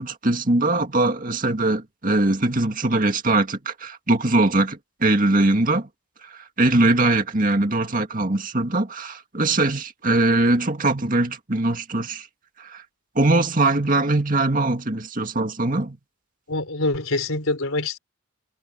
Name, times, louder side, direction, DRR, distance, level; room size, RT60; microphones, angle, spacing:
voice 1, 0.0-5.9 6.3-12.3 12.6-12.8 13.2-16.0, right 2 dB, 40° right, 2.1 m, -21 dB
voice 2, 16.5-18.0, left 2 dB, 80° left, 3.9 m, -25 dB
head